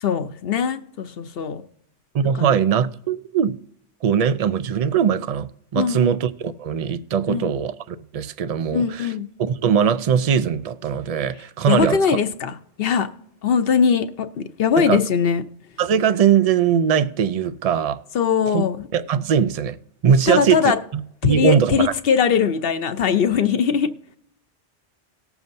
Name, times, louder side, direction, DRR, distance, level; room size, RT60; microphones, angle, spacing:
voice 1, 0.0-1.6 2.4-2.5 5.7-6.2 7.3-7.5 8.7-9.3 11.7-13.1 13.4-15.4 18.1-18.9 20.3-20.8 21.2-23.9, left 7 dB, 60° left, 0.9 m, -21 dB
voice 2, 2.1-3.6 4.0-9.1 9.4-12.0 14.8-15.0 15.8-18.0 18.5-18.6 18.9-19.8 20.0-20.7 21.2-21.9, right 8 dB, 60° right, 0.4 m, -20 dB
19.0 x 7.0 x 2.6 m
omnidirectional pair, 1.2 m